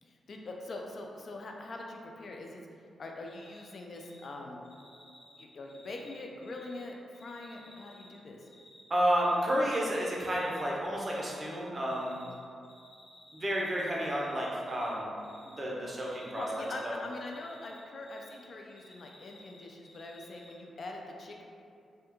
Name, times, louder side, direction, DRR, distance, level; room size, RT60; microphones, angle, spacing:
voice 1, 0.0-2.6 3.0-4.6 5.3-8.5 16.3-21.4, left 2 dB, 60° left, 1 dB, 0.3 m, -43 dB
Cricket, 3.3-3.7 3.9-4.3 4.6-6.8 7.1-8.8 9.1-9.5 9.9-10.7 11.0-12.4 12.6-14.9 15.2-15.6 15.9-18.4 18.7-20.5, left 1 dB, 75° left, 1.0 m, -57 dB
voice 2, 8.9-12.2 13.3-15.1 15.4-16.5 16.8-17.0, equal, 35° right, -4 dB, 0.6 m, -31 dB
3.4 x 2.2 x 2.9 m, 2.4 s
cardioid pair, 85°, 0 cm